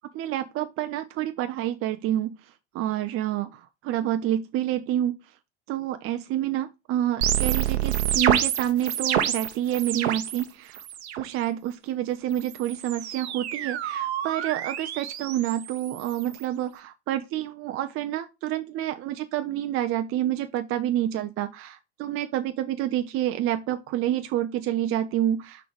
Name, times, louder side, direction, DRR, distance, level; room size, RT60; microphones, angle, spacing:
voice 1, 0.1-5.2 5.7-10.8 11.1-25.7, right 12 dB, 40° right, 0.6 m, -28 dB
sound 1, 7.2-10.4 10.7-11.3 12.3-16.4, right 10 dB, 75° right, 0.9 m, -28 dB
6.2 x 4.5 x 5.1 m
figure-of-eight pair, 70°, 33 cm